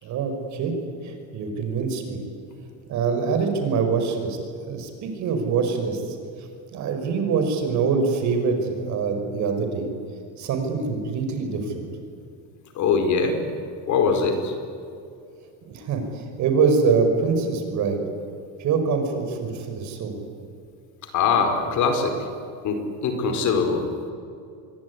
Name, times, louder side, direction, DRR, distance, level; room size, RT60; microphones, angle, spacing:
voice 1, 0.0-0.7 1.0-2.2 2.9-4.4 4.7-9.9 10.4-11.9 15.7-18.0 18.6-20.2, right 5 dB, 50° right, 5 dB, 5.6 m, -24 dB
voice 2, 12.7-13.4 13.9-14.5 21.1-22.2 22.6-23.8, left 5 dB, 50° left, 6 dB, 4.8 m, -22 dB
27.0 x 22.5 x 9.7 m, 2.5 s
cardioid pair, 160°, 37 cm